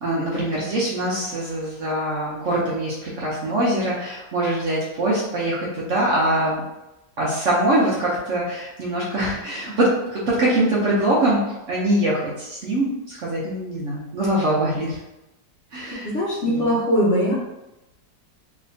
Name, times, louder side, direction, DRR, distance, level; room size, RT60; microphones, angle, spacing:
voice 1, 0.0-6.6 7.2-11.4 11.7-15.0 15.7-16.1 16.5-16.7, right 1 dB, 60° right, -6 dB, 0.9 m, -23 dB
voice 2, 15.9-17.3, equal, 55° left, -6 dB, 0.9 m, -21 dB
3.3 x 2.9 x 2.6 m, 0.95 s
omnidirectional pair, 1.9 m